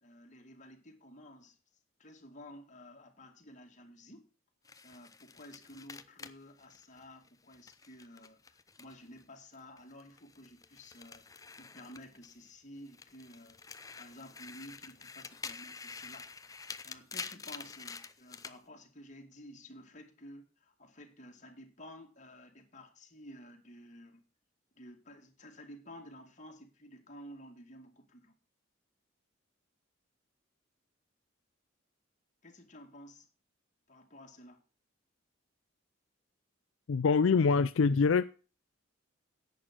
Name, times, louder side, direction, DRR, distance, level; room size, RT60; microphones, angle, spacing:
voice 1, 0.0-1.6 2.0-4.2 4.6-13.6 14.0-24.2 24.7-28.3 32.4-33.3 33.9-34.6, left 1 dB, 35° left, 2.3 m, -53 dB
sound 1, 4.7-9.2 9.5-12.5 12.9-18.6, left 5 dB, 15° left, 0.6 m, -48 dB
voice 2, 36.9-38.2, left 5 dB, 75° left, 0.4 m, -25 dB
11.0 x 8.1 x 6.1 m
head